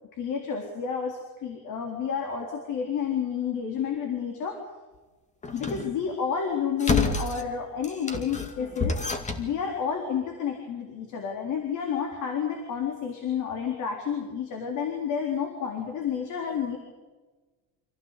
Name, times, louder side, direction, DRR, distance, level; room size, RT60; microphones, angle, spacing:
voice 1, 0.1-4.6 5.5-9.0 9.4-16.8, left 7 dB, 55° left, 3 dB, 3.9 m, -30 dB
sound 1, 5.4-5.9 6.8-7.4 7.8-9.5, left 3 dB, 20° left, 2.3 m, -29 dB
26.0 x 16.5 x 8.3 m, 1.3 s
cardioid pair, 165°, 36 cm